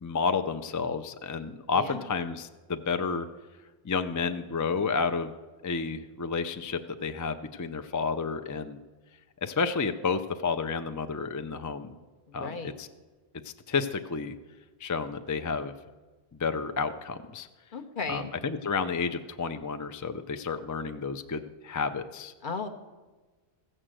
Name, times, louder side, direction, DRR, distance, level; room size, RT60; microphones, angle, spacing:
voice 1, 0.0-3.3 3.8-5.3 5.6-8.8 9.4-11.9 12.3-12.9 13.4-14.3 14.8-15.7 16.3-17.5 18.1-22.3, left 5 dB, 30° left, 9 dB, 0.3 m, -31 dB
voice 2, 1.7-2.1 12.3-12.7 17.7-18.3 22.4-22.7, left 4 dB, 55° left, 8 dB, 1.0 m, -35 dB
15.5 x 6.6 x 7.5 m, 1.3 s
omnidirectional pair, 1.1 m